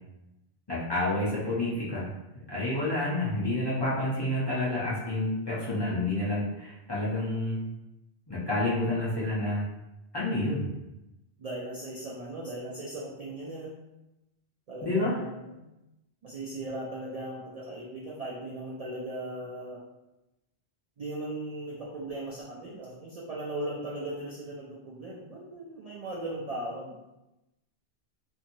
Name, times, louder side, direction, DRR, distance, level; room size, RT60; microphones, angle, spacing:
voice 1, 0.7-2.1 2.5-7.6 8.3-9.6 10.1-10.7 14.8-15.1, left 1 dB, 30° left, -8 dB, 0.5 m, -29 dB
voice 2, 11.4-13.7 14.7-15.6 16.2-19.8 21.0-27.0, right 1 dB, 60° right, -5 dB, 0.4 m, -38 dB
2.8 x 2.6 x 2.6 m, 0.96 s
omnidirectional pair, 1.1 m